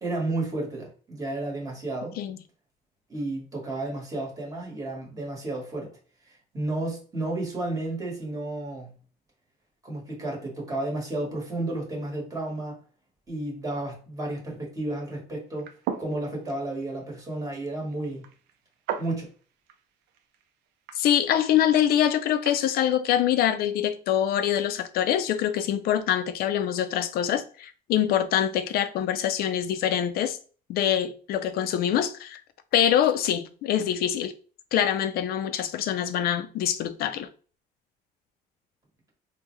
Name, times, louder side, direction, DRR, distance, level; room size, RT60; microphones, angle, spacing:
voice 1, 0.0-2.2 3.1-5.9 6.2-9.0 9.8-12.8 13.3-15.7 16.0-18.3 19.0-19.3, right 2 dB, 20° right, 1.4 m, -32 dB
sound 1, 15.5-22.7, right 8 dB, 85° right, 0.4 m, -40 dB
voice 2, 21.0-30.4 30.7-32.4 32.7-34.3 34.7-37.3, left 10 dB, 65° left, 0.4 m, -24 dB
3.5 x 2.2 x 3.1 m
cardioid pair, 110°, 17 cm